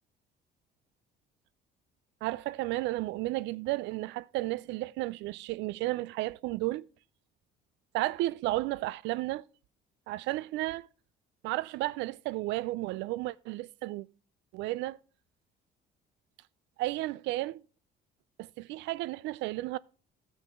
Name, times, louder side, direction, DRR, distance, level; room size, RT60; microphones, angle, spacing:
voice 1, 2.2-6.9 7.9-9.4 10.1-10.9 11.4-14.1 14.5-15.0 16.8-17.6 18.4-19.8, right 18 dB, 85° right, 0.4 m, -33 dB
14.5 x 6.1 x 3.6 m
cardioid pair, 150°, 18 cm